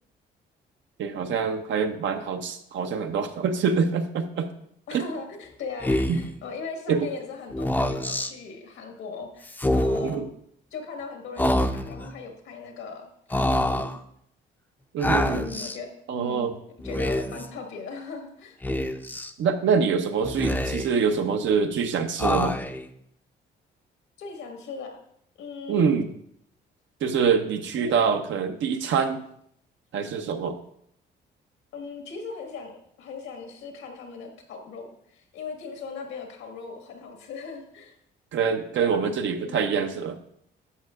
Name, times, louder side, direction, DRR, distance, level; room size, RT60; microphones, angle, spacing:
voice 1, 1.0-4.5 4.9-5.0 6.1-6.2 6.9-7.1 10.0-10.2 14.9-15.4 16.1-16.5 19.4-22.6 25.7-26.1 27.0-29.2 29.9-30.6 38.3-40.2, right 6 dB, 70° right, 7 dB, 0.8 m, -25 dB
voice 2, 4.9-10.3 10.7-13.9 15.3-16.5 16.8-18.6 24.2-25.0 25.4-26.0 27.8-27.9 31.7-37.9 38.8-39.6, left 5 dB, 90° left, 3 dB, 1.6 m, -39 dB
Speech, 5.8-6.3 7.5-8.3 9.5-10.2 11.4-12.1 13.3-14.0 15.0-15.8 16.8-17.5 18.6-19.3 20.2-21.0 22.2-22.9, left 1 dB, 10° left, 0.5 m, -26 dB
11.0 x 6.7 x 2.4 m, 0.69 s
cardioid pair, 90°, 20 cm